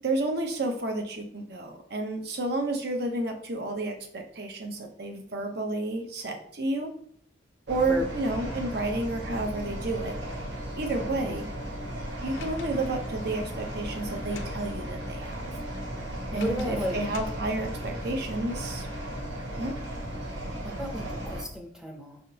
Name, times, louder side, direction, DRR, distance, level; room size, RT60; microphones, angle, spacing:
voice 1, 0.0-6.9 7.7-10.1 10.8-11.5 12.2-15.6 16.3-18.9 19.6-19.7, right 2 dB, 55° right, 4 dB, 0.7 m, -31 dB
sound 1, 7.7-21.4, right 1 dB, 75° right, 1.1 m, -36 dB
voice 2, 7.9-8.2 11.3-11.4 16.3-17.0 20.6-22.2, left 1 dB, 5° right, 2 dB, 0.6 m, -33 dB
Sliding door, 12.3-14.6 16.3-17.4, left 3 dB, 80° left, 0.6 m, -44 dB
5.2 x 3.5 x 2.8 m, 0.62 s
head